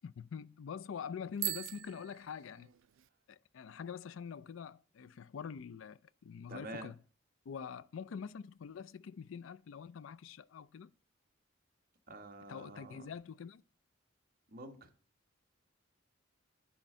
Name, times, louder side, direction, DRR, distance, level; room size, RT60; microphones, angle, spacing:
voice 1, 0.0-2.7 3.3-7.0 7.5-10.9 12.5-13.6, left 6 dB, 75° left, 0.4 m, -45 dB
Bicycle bell, 1.3-3.1, right 18 dB, 75° right, 0.4 m, -41 dB
voice 2, 6.5-6.9 12.1-13.1 14.5-14.9, right 1 dB, 50° right, 1.2 m, -47 dB
10.0 x 3.7 x 6.6 m
head